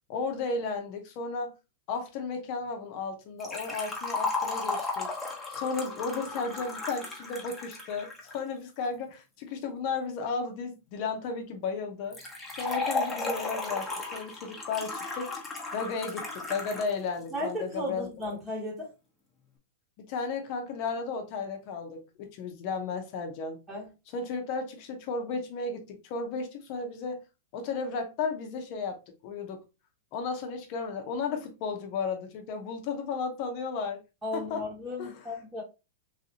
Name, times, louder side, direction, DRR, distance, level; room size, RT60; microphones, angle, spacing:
voice 1, 0.1-1.5 1.9-5.1 5.5-12.2 12.6-15.4 15.7-18.1 20.0-23.6 24.1-27.2 27.5-29.0 29.2-29.6 30.1-34.0 34.3-34.6 35.0-35.1, left 4 dB, 50° left, 0.7 m, -34 dB
Liquid, 3.4-8.4 12.1-16.9 17.2-17.3 18.2-18.3, left 3 dB, 10° left, 1.0 m, -35 dB
voice 2, 17.3-18.9 23.7-23.9 34.2-35.6, left 1 dB, 15° right, 1.2 m, -35 dB
3.1 x 2.7 x 2.8 m
hypercardioid pair, 135°, 0 cm